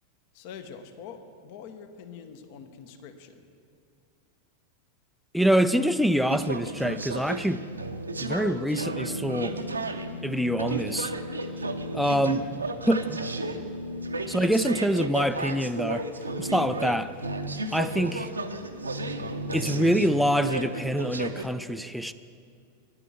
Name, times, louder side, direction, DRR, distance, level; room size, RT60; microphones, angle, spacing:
voice 1, 0.3-3.4, left 6 dB, 50° left, 9 dB, 0.9 m, -44 dB
voice 2, 5.3-7.6 8.2-9.6 10.2-11.1 11.9-12.4 12.9-13.2 14.3-16.1 16.4-17.2 17.7-18.3 19.5-22.1, equal, ahead, 9 dB, 0.3 m, -25 dB
sound 1, 6.3-21.5, right 2 dB, 80° right, 0.7 m, -33 dB
10.0 x 9.8 x 7.0 m, 2.3 s
figure-of-eight pair, 90°, 0 cm